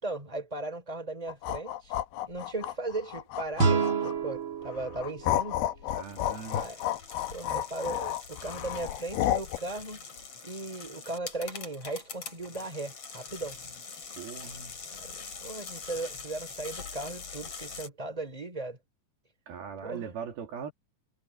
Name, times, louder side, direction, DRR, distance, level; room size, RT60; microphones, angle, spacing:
voice 1, 0.0-1.9 2.2-5.6 6.5-6.9 7.3-10.0 10.4-13.6 14.9-18.8 19.8-20.1, right 2 dB, 10° right, 5.1 m, -37 dB
sound 1, 1.3-4.3 4.8-9.6, left 13 dB, 85° left, 2.9 m, -31 dB
sound 2, 3.6-6.6, right 4 dB, 35° right, 2.8 m, -30 dB
sound 3, 5.9-17.9, left 5 dB, 40° left, 4.0 m, -44 dB
voice 2, 5.9-6.7 14.1-14.7 19.5-20.7, right 7 dB, 80° right, 4.4 m, -40 dB
omnidirectional pair, 4.3 m